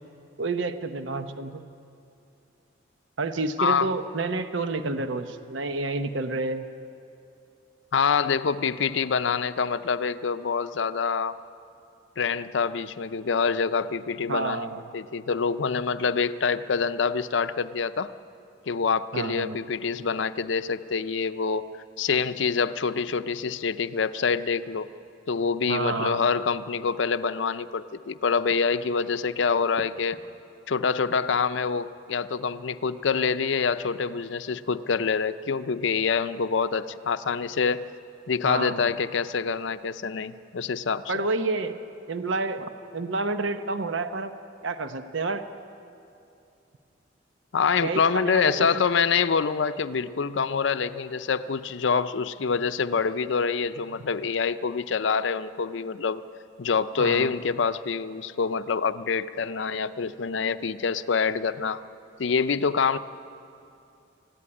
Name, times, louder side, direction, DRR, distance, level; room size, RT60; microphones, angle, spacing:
voice 1, 0.4-1.6 3.2-6.7 14.3-14.8 19.1-19.6 25.7-26.2 38.4-38.9 41.1-41.8 42.1-44.3 44.6-45.5 47.8-48.8 57.0-57.3, right 3 dB, 75° right, 9 dB, 0.9 m, -29 dB
voice 2, 3.6-3.9 7.9-11.4 12.2-14.7 14.9-18.1 18.7-21.6 22.0-24.9 25.3-30.2 30.7-37.9 38.3-41.1 47.5-56.2 56.6-61.8 62.2-63.0, left 5 dB, 70° left, 13 dB, 0.5 m, -26 dB
19.5 x 15.0 x 9.8 m, 2.6 s
head